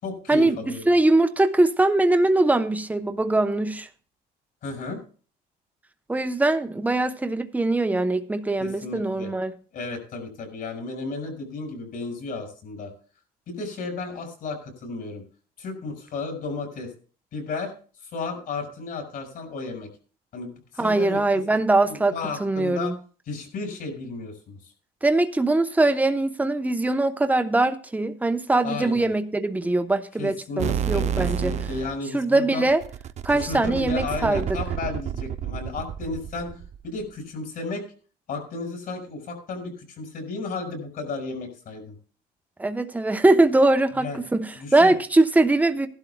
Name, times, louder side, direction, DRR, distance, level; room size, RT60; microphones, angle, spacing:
voice 1, 0.0-0.9 4.6-5.0 8.6-9.3 9.7-12.9 13.5-15.2 15.6-16.9 17.3-17.7 18.1-19.9 20.3-21.2 21.9-22.9 23.3-24.6 28.6-29.1 30.2-32.7 33.3-37.9 38.3-42.0 43.9-44.2 44.6-44.9, left 3 dB, 65° left, 6.0 m, -33 dB
voice 2, 0.9-3.9 6.1-9.5 20.8-22.1 22.4-22.9 25.0-31.5 32.1-32.8 33.2-34.4 42.6-45.9, right 2 dB, 10° right, 0.9 m, -22 dB
sound 1, 30.6-32.0 32.7-36.9, right 8 dB, 40° right, 0.4 m, -30 dB
18.0 x 12.0 x 2.3 m
cardioid pair, 110°, 17 cm